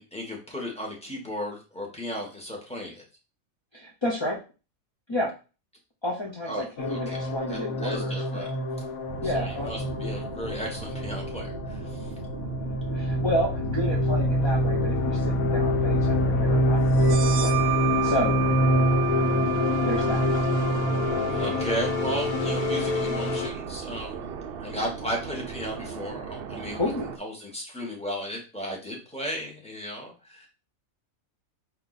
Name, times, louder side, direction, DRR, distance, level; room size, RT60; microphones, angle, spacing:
voice 1, 0.0-3.0 6.5-8.5 9.2-12.1 21.3-24.1 24.6-26.9 27.2-30.5, equal, 5° left, -1 dB, 1.1 m, -35 dB
voice 2, 3.7-4.4 5.1-5.3 6.0-8.5 9.2-9.7 12.6-17.6 18.0-18.4 19.9-20.3 26.7-27.1, left 1 dB, 30° left, -2 dB, 0.5 m, -30 dB
sound 1, 6.8-23.5, left 1 dB, 80° left, 1.2 m, -26 dB
sound 2, 9.1-27.2, right 5 dB, 60° right, 0.6 m, -38 dB
sound 3, 16.9-24.3, right 18 dB, 75° right, 1.0 m, -33 dB
4.5 x 2.8 x 3.9 m, 0.32 s
omnidirectional pair, 1.5 m